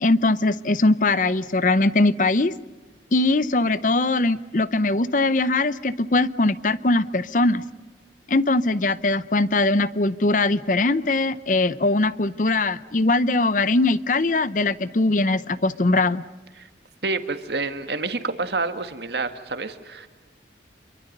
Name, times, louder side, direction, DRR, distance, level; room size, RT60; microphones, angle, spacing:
voice 1, 0.0-2.6 3.1-7.6 8.3-16.2, left 2 dB, 45° left, 16 dB, 0.7 m, -21 dB
voice 2, 17.0-20.1, right 3 dB, 70° right, 8 dB, 1.8 m, -28 dB
27.5 x 23.5 x 6.7 m, 1.3 s
head